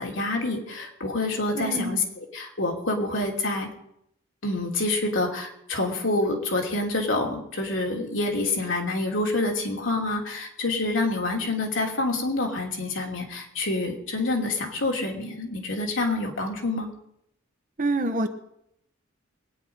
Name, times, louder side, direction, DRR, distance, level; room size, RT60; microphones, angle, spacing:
voice 1, 0.0-3.7 4.4-16.9, left 2 dB, 65° left, 0 dB, 3.0 m, -27 dB
voice 2, 1.5-2.0 17.8-18.3, right 2 dB, 40° right, 7 dB, 1.2 m, -26 dB
22.0 x 9.6 x 5.3 m, 0.75 s
head